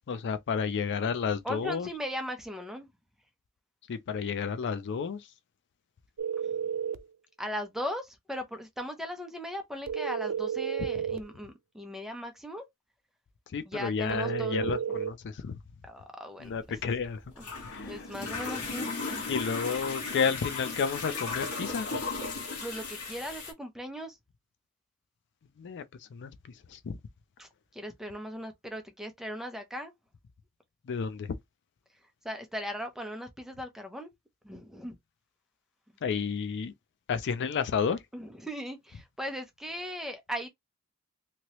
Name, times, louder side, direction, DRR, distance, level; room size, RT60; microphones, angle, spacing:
voice 1, 0.1-1.9 3.9-5.3 13.5-15.6 16.4-17.2 17.6-18.0 19.3-21.9 25.6-27.0 30.9-31.3 36.0-36.7 37.1-38.0, left 6 dB, 55° left, 0.4 m, -31 dB
voice 2, 1.4-2.9 6.4-6.6 7.4-12.7 13.6-15.0 15.8-16.8 17.4-17.5 17.8-19.3 22.6-24.2 27.4-29.9 32.2-34.1 34.4-34.9 38.1-40.5, equal, ahead, 0.6 m, -38 dB
sound 1, 6.2-7.0 9.9-11.3 14.1-15.1, right 8 dB, 85° right, 0.4 m, -32 dB
sound 2, 16.5-23.5, left 4 dB, 80° left, 1.4 m, -36 dB
3.0 x 2.7 x 3.0 m
head